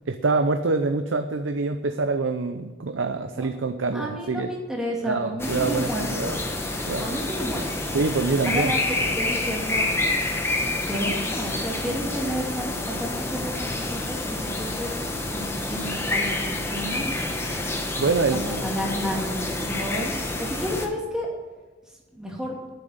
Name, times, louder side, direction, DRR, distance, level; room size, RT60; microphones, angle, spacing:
voice 1, 0.1-4.5 5.0-6.4 6.9-7.1 7.9-8.7 18.0-18.4, right 3 dB, 85° right, 8 dB, 0.6 m, -25 dB
voice 2, 3.9-6.4 7.0-7.6 8.4-8.8 9.1-9.9 10.9-17.2 18.3-21.3 22.1-22.6, equal, 5° right, -2 dB, 2.6 m, -31 dB
sound 1, 5.4-20.9, left 2 dB, 15° left, 1.2 m, -28 dB
10.0 x 7.6 x 9.5 m, 1.2 s
head